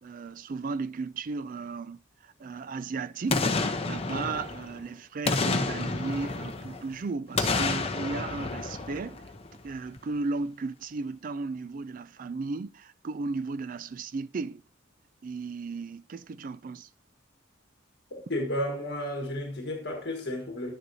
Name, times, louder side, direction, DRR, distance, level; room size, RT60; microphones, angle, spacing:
voice 1, 0.0-9.2 9.6-14.6 15.2-16.9, right 4 dB, 40° right, 0.3 m, -35 dB
Boom, 3.3-4.8 5.3-6.9 7.4-9.6 10.0-10.1, left 3 dB, 30° left, 0.8 m, -29 dB
voice 2, 18.1-20.7, left 1 dB, 55° left, 1.5 m, -32 dB
11.0 x 9.6 x 2.8 m
head